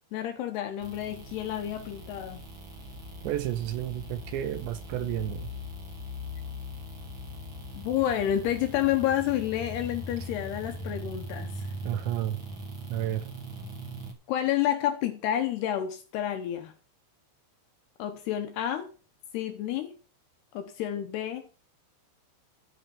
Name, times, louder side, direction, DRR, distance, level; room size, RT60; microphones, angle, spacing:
voice 1, 0.1-2.5 7.7-11.7 14.3-16.7 18.0-18.9 19.3-19.9 20.5-21.4, left 11 dB, 75° left, 2.6 m, -29 dB
sound 1, 0.8-14.1, equal, 35° right, 2.1 m, -40 dB
voice 2, 3.2-5.5 11.8-12.4 12.9-13.3, right 12 dB, 80° right, 2.8 m, -31 dB
13.5 x 6.4 x 5.4 m
omnidirectional pair, 5.7 m